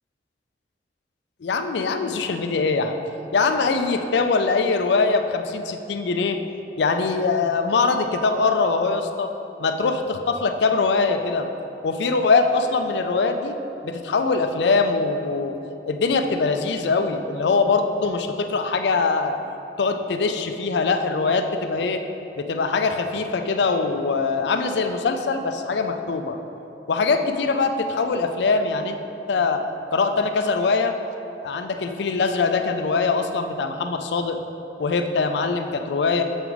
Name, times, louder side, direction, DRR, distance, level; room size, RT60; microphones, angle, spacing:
voice 1, 1.4-3.0 3.3-6.4 6.8-9.3 9.6-11.5 11.8-13.6 13.8-15.6 15.9-19.4 19.8-22.0 22.4-26.4 26.9-29.0 29.3-29.6 29.9-31.0 31.4-34.4 34.8-36.2, left 4 dB, 75° left, 7 dB, 0.4 m, -22 dB
7.1 x 4.5 x 4.0 m, 2.9 s
head